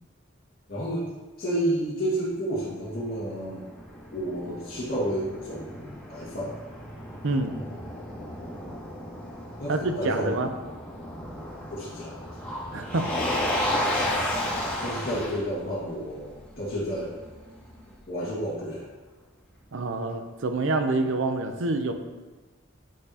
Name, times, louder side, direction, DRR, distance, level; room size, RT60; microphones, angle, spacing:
voice 1, 0.7-1.1 1.4-3.6 4.1-6.5 9.6-10.4 11.7-12.4 14.8-17.1 18.1-18.9, right 1 dB, 45° left, -9 dB, 1.9 m, -31 dB
Motor vehicle (road), 2.9-17.9, left 1 dB, 5° left, 2.0 m, -33 dB
voice 2, 9.7-10.5 12.7-13.1 19.7-21.9, right 2 dB, 65° right, 7 dB, 0.6 m, -27 dB
9.3 x 6.7 x 2.8 m, 1.3 s
head